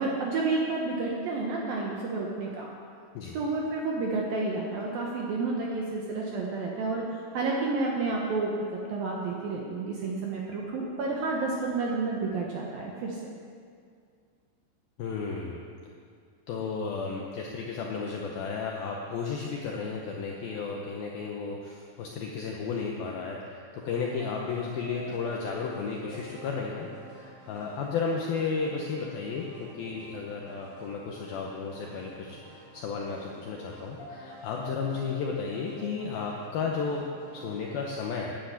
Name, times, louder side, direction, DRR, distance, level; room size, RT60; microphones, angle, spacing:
voice 1, 0.0-2.7 3.3-7.0 7.3-8.5 8.9-13.2, right 3 dB, 70° right, -2 dB, 2.2 m, -30 dB
voice 2, 15.0-15.6 16.5-38.4, left 5 dB, 80° left, 0 dB, 2.2 m, -33 dB
sound 1, 23.8-37.9, equal, 30° right, 3.5 m, -48 dB
10.0 x 10.0 x 8.3 m, 2.2 s
omnidirectional pair, 5.5 m